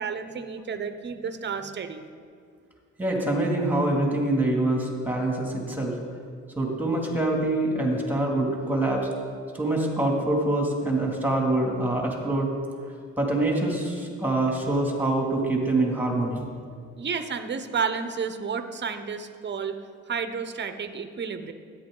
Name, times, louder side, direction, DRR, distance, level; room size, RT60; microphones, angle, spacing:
voice 1, 0.0-2.0 17.0-19.8 20.1-21.5, right 6 dB, 35° right, 9 dB, 0.8 m, -31 dB
voice 2, 3.0-5.9 6.6-9.1 9.5-12.5 13.2-16.5, right 2 dB, 5° right, 0 dB, 2.4 m, -25 dB
13.5 x 9.6 x 3.8 m, 2.1 s
cardioid pair, 90°, 30 cm